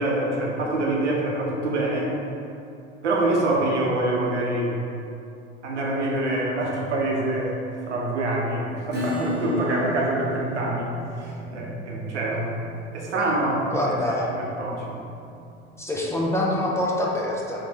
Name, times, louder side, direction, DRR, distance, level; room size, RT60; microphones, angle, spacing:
voice 1, 0.0-2.2 3.0-4.8 5.6-7.6 7.9-10.9 11.2-12.5 12.9-14.0 14.3-15.0, right 2 dB, 85° right, -2 dB, 0.7 m, -25 dB
Acoustic guitar / Strum, 8.9-16.1, left 1 dB, 30° right, 0.9 m, -34 dB
voice 2, 13.7-14.3 15.8-17.6, left 1 dB, 10° left, -3 dB, 0.4 m, -26 dB
3.3 x 3.2 x 2.8 m, 2.6 s
hypercardioid pair, 75°, 34 cm